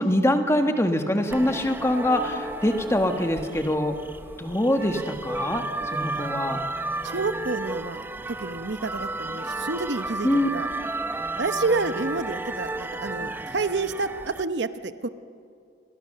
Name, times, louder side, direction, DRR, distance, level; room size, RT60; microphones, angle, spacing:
voice 1, 0.0-4.0 4.4-5.6 5.9-6.6 10.2-10.5, left 1 dB, 15° left, 5 dB, 1.6 m, -24 dB
sound 1, 1.3-14.4, right 2 dB, 10° right, 0.7 m, -33 dB
voice 2, 7.0-10.7 11.4-15.1, right 3 dB, 75° right, 11 dB, 0.9 m, -29 dB
28.0 x 23.5 x 6.7 m, 2.4 s
head